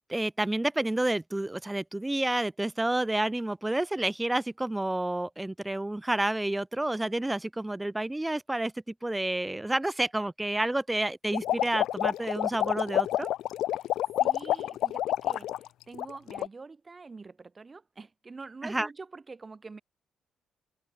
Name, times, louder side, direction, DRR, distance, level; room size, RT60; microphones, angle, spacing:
voice 1, 0.1-13.3 18.6-18.9, right 1 dB, 10° right, 1.0 m, -29 dB
sound 1, 11.3-15.7 15.9-16.5, left 13 dB, 80° left, 0.8 m, -28 dB
voice 2, 14.2-19.8, right 4 dB, 30° right, 7.8 m, -46 dB
cardioid pair, 90°, 0 cm